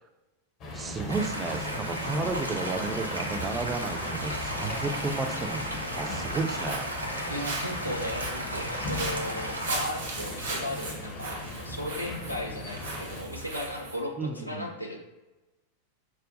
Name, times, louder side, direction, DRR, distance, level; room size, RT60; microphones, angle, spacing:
sound 1, 0.6-13.2, left 2 dB, 35° left, 0.6 m, -38 dB
voice 1, 0.7-6.9 14.2-14.7, right 3 dB, 20° right, 5 dB, 0.3 m, -33 dB
sound 2, 1.1-9.8, right 1 dB, 85° right, 0.4 m, -35 dB
Walk footsteps, 6.3-14.0, right 2 dB, 70° right, 0.9 m, -38 dB
voice 2, 7.3-15.0, equal, 85° left, 1 dB, 0.5 m, -36 dB
5.0 x 2.1 x 2.5 m, 1.1 s
figure-of-eight pair, 90°, 0 cm